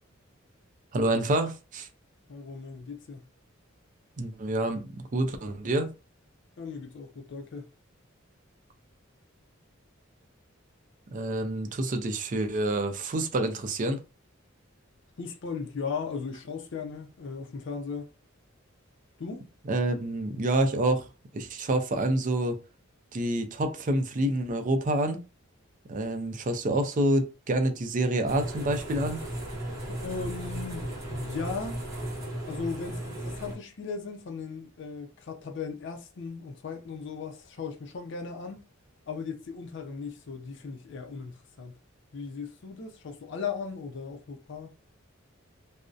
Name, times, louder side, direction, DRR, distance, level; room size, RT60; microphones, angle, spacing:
voice 1, 0.9-1.9 4.2-5.9 11.1-14.0 19.7-21.1 21.3-22.6 23.1-25.2 25.9-29.2, right 1 dB, 40° right, 0.4 m, -27 dB
voice 2, 2.3-3.3 6.6-7.7 15.2-18.1 19.2-19.5 29.8-31.8 32.5-38.6 39.1-41.8 42.1-44.7, left 5 dB, 60° left, 0.5 m, -37 dB
sound 1, 28.3-33.5, right 1 dB, 15° right, 0.8 m, -36 dB
2.5 x 2.0 x 2.3 m
head